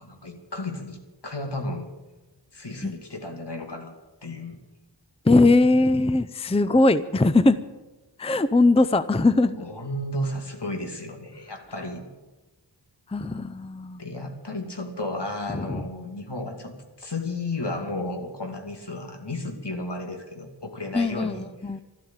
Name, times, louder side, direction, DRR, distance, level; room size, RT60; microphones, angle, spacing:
voice 1, 0.0-1.9 2.5-3.9 4.2-4.6 9.6-12.1 14.0-21.5, left 2 dB, 70° left, 3 dB, 2.6 m, -33 dB
voice 2, 5.2-7.6 8.2-9.6 13.1-14.0 15.5-15.8 20.9-21.8, left 2 dB, 15° left, 14 dB, 0.5 m, -20 dB
13.0 x 12.5 x 8.8 m, 1.2 s
wide cardioid pair, 40°, 43 cm